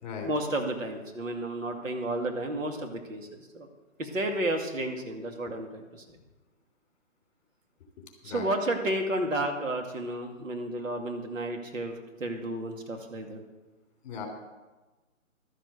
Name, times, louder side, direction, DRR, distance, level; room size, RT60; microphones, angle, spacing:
voice 1, 0.2-3.7 4.0-6.2 8.2-13.4, right 1 dB, 75° right, 3 dB, 2.4 m, -32 dB
voice 2, 8.2-8.5 14.0-14.3, left 6 dB, 35° left, 3 dB, 3.2 m, -38 dB
12.5 x 7.1 x 7.9 m, 1.2 s
hypercardioid pair, 145°, 40 cm